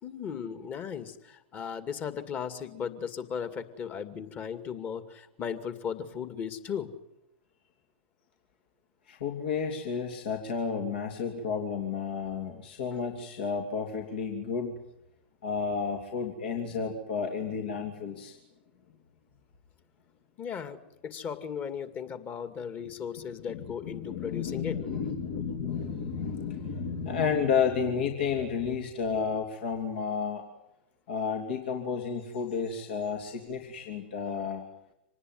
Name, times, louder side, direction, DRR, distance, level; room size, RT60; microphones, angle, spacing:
voice 1, 0.0-6.9 20.4-24.8, left 7 dB, 30° left, 10 dB, 2.4 m, -36 dB
voice 2, 9.1-14.8 15.4-18.4 23.5-30.4 31.1-34.6, left 6 dB, 60° left, 2 dB, 3.1 m, -31 dB
26.0 x 19.5 x 9.6 m, 0.86 s
figure-of-eight pair, 100°, 6 cm